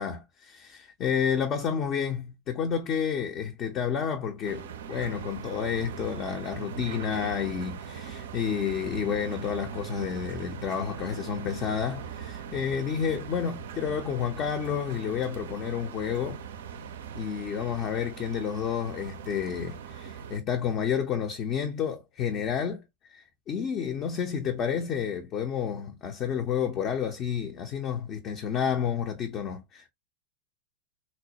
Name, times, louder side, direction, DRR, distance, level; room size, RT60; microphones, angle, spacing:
voice 1, 0.0-16.4 17.1-22.8 23.1-29.9, left 7 dB, 35° left, 0.5 m, -30 dB
sound 1, 4.4-20.4, right 7 dB, 60° right, 0.4 m, -40 dB
4.2 x 2.1 x 2.7 m
figure-of-eight pair, 90°, 0 cm